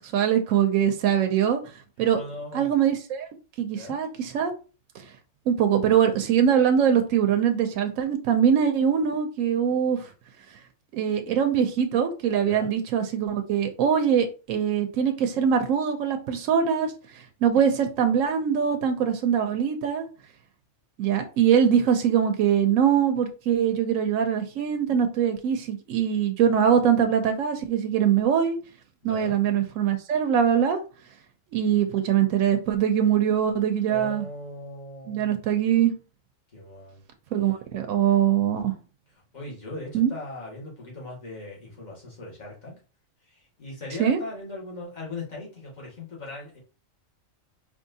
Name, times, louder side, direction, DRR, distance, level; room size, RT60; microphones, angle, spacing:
voice 1, 0.0-1.6 2.0-2.2 2.5-3.3 3.6-4.5 5.5-10.0 10.9-20.1 21.0-28.6 29.0-30.8 31.5-34.2 35.1-35.9 37.3-38.7 39.9-40.1 44.0-44.2, right 8 dB, 85° right, 6 dB, 1.0 m, -22 dB
voice 2, 2.1-2.7 3.7-4.0 12.4-12.7 29.0-29.4 33.9-35.3 36.5-37.0 39.3-42.8 43.3-46.6, left 2 dB, 35° left, -4 dB, 1.8 m, -39 dB
4.5 x 3.0 x 2.7 m, 0.34 s
omnidirectional pair, 1.3 m